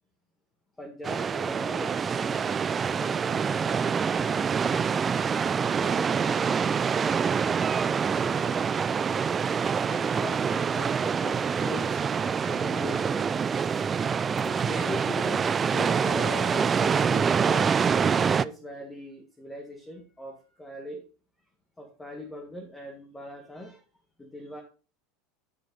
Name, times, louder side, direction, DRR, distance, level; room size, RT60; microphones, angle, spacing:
voice 1, 0.8-4.3 5.6-8.6 9.9-13.2 14.4-21.0 21.8-23.8 24.2-24.6, left 1 dB, 10° left, 2 dB, 1.7 m, -40 dB
sound 1, 1.0-18.5, right 6 dB, 25° right, 0.3 m, -26 dB
sound 2, 4.0-19.0, left 4 dB, 35° left, 3.2 m, -57 dB
9.9 x 5.2 x 3.9 m, 0.34 s
supercardioid pair, 105°, 0 cm